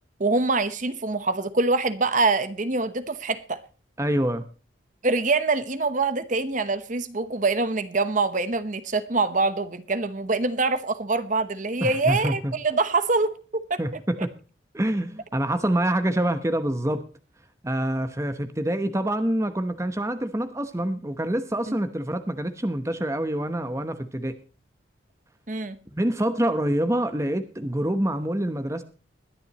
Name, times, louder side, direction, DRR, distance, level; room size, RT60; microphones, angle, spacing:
voice 1, 0.2-3.6 5.0-13.8 25.5-25.8, right 3 dB, 40° right, 1.0 m, -24 dB
voice 2, 4.0-4.4 11.8-12.5 13.8-14.3 14.7-17.0 17.6-24.4 25.9-28.8, right 1 dB, 15° right, 0.9 m, -26 dB
21.0 x 10.5 x 3.0 m
head